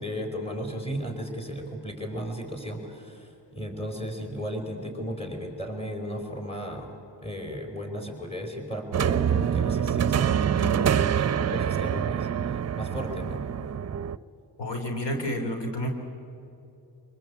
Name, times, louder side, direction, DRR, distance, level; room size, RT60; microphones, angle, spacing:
voice 1, 0.0-7.0 7.2-13.4, equal, 15° left, 3 dB, 4.9 m, -35 dB
sound 1, 8.9-14.2, right 8 dB, 35° right, 0.6 m, -25 dB
voice 2, 14.6-15.9, equal, 65° left, 4 dB, 3.2 m, -30 dB
27.0 x 20.0 x 8.5 m, 2.8 s
cardioid pair, 90°, 45 cm